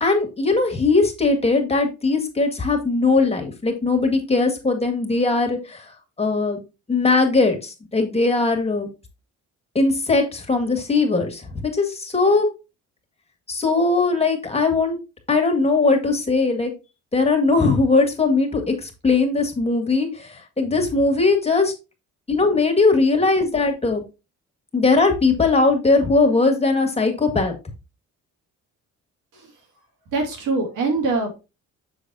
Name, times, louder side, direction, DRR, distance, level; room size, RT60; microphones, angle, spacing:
voice 1, 0.0-5.8 6.2-6.6 6.9-8.9 9.8-12.5 13.5-15.0 15.3-16.7 17.1-21.7 22.3-24.0 24.7-27.5, left 3 dB, 20° left, 4 dB, 2.0 m, -20 dB
voice 2, 30.1-31.3, right 3 dB, 85° right, 2 dB, 2.3 m, -24 dB
7.1 x 6.1 x 2.8 m, 0.29 s
cardioid pair, 90°, 30 cm